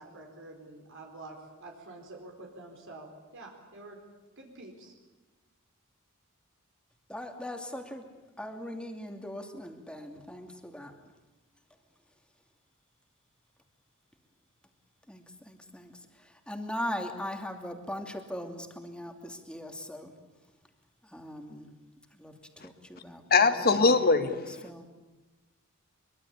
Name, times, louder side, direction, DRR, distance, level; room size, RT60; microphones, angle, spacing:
voice 1, 0.0-4.0 4.4-4.9, right 2 dB, 60° right, 2 dB, 4.4 m, -47 dB
voice 2, 7.1-8.0 8.4-10.9 15.1-20.1 21.0-21.7 22.1-22.3 22.6-23.9 24.3-24.9, left 1 dB, 5° left, 4 dB, 2.8 m, -40 dB
voice 3, 23.3-24.5, left 4 dB, 45° left, 9 dB, 1.8 m, -22 dB
23.5 x 23.5 x 8.6 m, 1.1 s
head